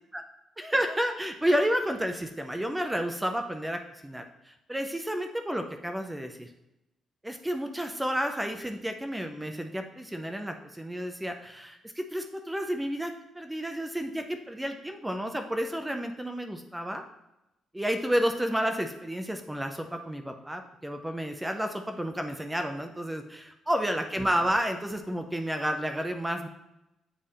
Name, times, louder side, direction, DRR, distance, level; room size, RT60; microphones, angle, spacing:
voice 1, 0.6-6.5 7.2-17.0 17.7-26.5, equal, 10° right, 5 dB, 0.5 m, -31 dB
7.5 x 3.4 x 4.2 m, 0.91 s
cardioid pair, 90°, 0 cm